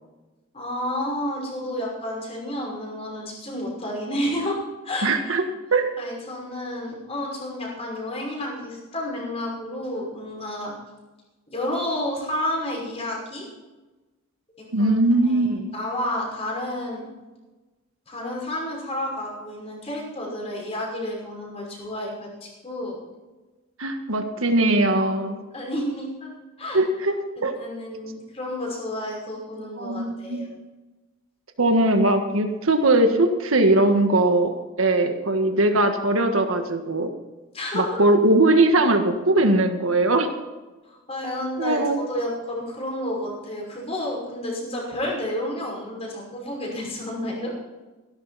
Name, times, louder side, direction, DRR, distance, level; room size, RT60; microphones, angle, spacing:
voice 1, 0.5-4.6 4.8-5.4 6.0-10.7 11.5-13.4 14.6-14.9 15.3-15.5 15.7-17.1 18.1-23.0 25.5-26.3 26.6-26.8 27.6-30.5 37.5-38.0 40.8-47.5, left 1 dB, 30° left, -2 dB, 5.7 m, -30 dB
voice 2, 5.0-5.4 5.7-5.9 14.7-15.7 23.8-25.4 26.7-27.2 27.4-27.5 29.8-30.5 31.6-37.1 37.7-40.3 41.6-42.1, right 2 dB, 80° right, 5 dB, 1.6 m, -20 dB
16.0 x 13.5 x 4.2 m, 1.2 s
head